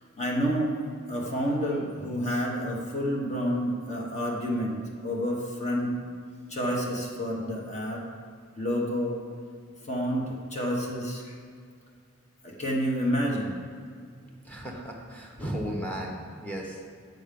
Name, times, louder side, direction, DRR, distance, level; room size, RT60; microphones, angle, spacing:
voice 1, 0.2-0.8 1.1-4.8 5.0-6.1 6.5-8.0 8.6-9.2 9.8-11.3 12.4-13.6, equal, 30° left, -2 dB, 1.2 m, -29 dB
voice 2, 14.4-16.8, equal, 5° left, 0 dB, 1.1 m, -35 dB
7.8 x 6.2 x 5.2 m, 2.1 s
head